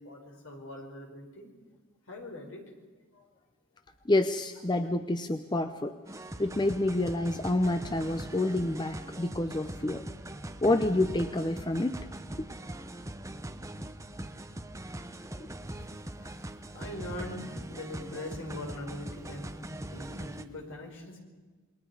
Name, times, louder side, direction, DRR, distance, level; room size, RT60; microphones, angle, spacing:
voice 1, 0.0-1.5 2.1-2.6 3.1-3.3 15.8-21.2, left 1 dB, 65° left, 1 dB, 5.1 m, -42 dB
voice 2, 4.0-6.0 6.4-10.0 10.6-12.0 12.4-12.5 15.4-15.5, left 2 dB, 20° left, 9 dB, 0.6 m, -28 dB
sound 1, 6.1-20.5, right 1 dB, 15° right, 0.8 m, -41 dB
28.5 x 22.0 x 4.9 m, 1.4 s
head